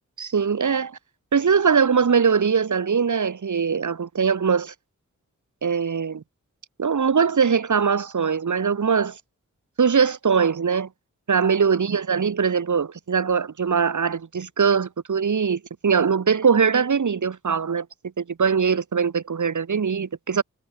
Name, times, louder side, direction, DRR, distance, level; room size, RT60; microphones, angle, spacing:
voice 1, 0.2-1.0 1.3-4.7 5.6-6.2 6.8-9.2 9.8-10.9 11.3-17.9 18.2-20.4, right 6 dB, 75° right, 2.4 m, -21 dB
wide cardioid pair, 110°, 30 cm